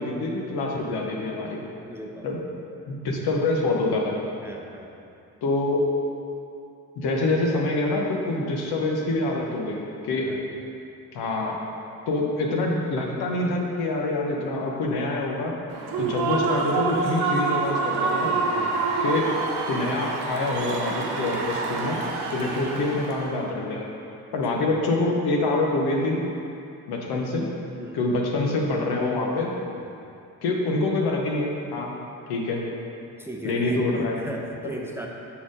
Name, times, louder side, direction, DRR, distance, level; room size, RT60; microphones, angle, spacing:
voice 1, 0.0-1.6 2.2-2.4 2.9-4.1 5.4-5.8 7.0-10.3 11.1-11.6 12.1-15.5 16.0-18.3 19.0-19.3 19.7-22.0 22.3-23.9 24.3-26.2 26.9-27.5 27.9-29.5 30.4-31.9 32.3-32.6 33.4-34.2, left 2 dB, 75° left, 0 dB, 1.0 m, -26 dB
voice 2, 1.8-2.4 4.4-4.9 10.3-10.4 15.9-16.1 18.5-18.8 24.3-24.6 27.8-28.0 29.8-30.0 33.1-35.1, right 1 dB, 5° right, -1 dB, 0.7 m, -38 dB
Human voice / Cheering / Applause, 15.7-23.4, right 4 dB, 80° right, 0.9 m, -27 dB
5.8 x 4.1 x 5.0 m, 2.7 s
supercardioid pair, 60°, 39 cm